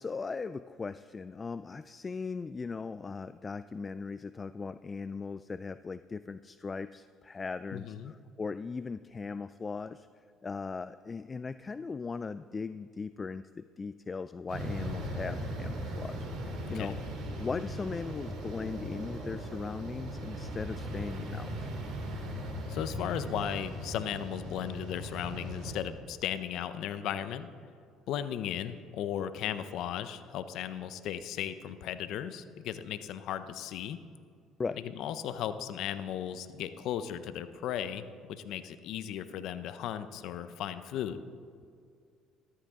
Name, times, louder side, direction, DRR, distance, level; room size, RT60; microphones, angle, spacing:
voice 1, 0.0-10.1 10.4-17.0 17.4-21.6 34.6-34.8, left 4 dB, 30° left, 14 dB, 0.3 m, -38 dB
voice 2, 7.7-8.1 16.7-16.9 22.7-27.5 28.1-34.0 34.8-41.2, left 10 dB, 70° left, 12 dB, 0.6 m, -36 dB
sound 1, 14.5-25.8, equal, 65° right, 3.2 m, -38 dB
14.5 x 13.0 x 3.7 m, 2.2 s
supercardioid pair, 80°, 0 cm